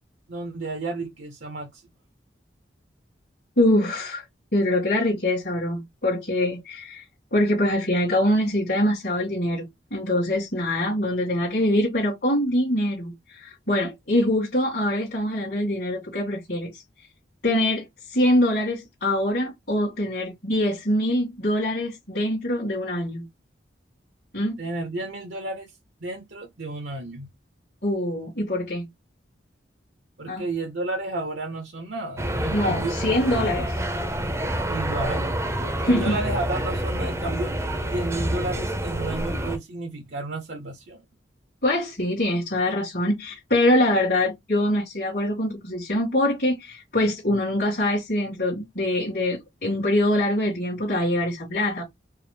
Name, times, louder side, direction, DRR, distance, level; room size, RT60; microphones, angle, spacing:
voice 1, 0.3-1.8 24.6-25.7 26.0-27.3 30.2-33.0 34.7-35.3 35.8-37.5 37.9-41.0, right 2 dB, 65° right, 0.7 m, -32 dB
voice 2, 3.6-4.2 4.5-7.0 7.3-16.8 17.4-23.3 24.3-24.6 27.8-28.9 30.3-30.4 32.5-33.9 35.8-36.2 41.6-51.8, left 1 dB, 60° left, 1.9 m, -24 dB
sound 1, 32.2-39.6, right 1 dB, 15° right, 0.6 m, -27 dB
4.6 x 2.0 x 3.3 m
head